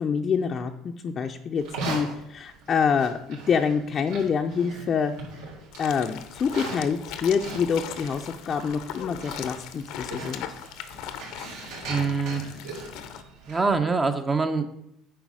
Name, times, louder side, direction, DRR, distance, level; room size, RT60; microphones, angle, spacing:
voice 1, 0.0-5.1 5.8-10.5, left 6 dB, 40° left, 3 dB, 0.6 m, -26 dB
Livestock farm animals working animals, 1.6-13.8, right 3 dB, 80° right, 3.6 m, -40 dB
sound 1, 5.7-13.2, left 10 dB, 70° left, 0.8 m, -39 dB
voice 2, 11.9-12.4 13.5-14.7, right 4 dB, 25° right, 7 dB, 0.7 m, -24 dB
9.4 x 4.1 x 6.2 m, 0.78 s
cardioid pair, 115°, 0 cm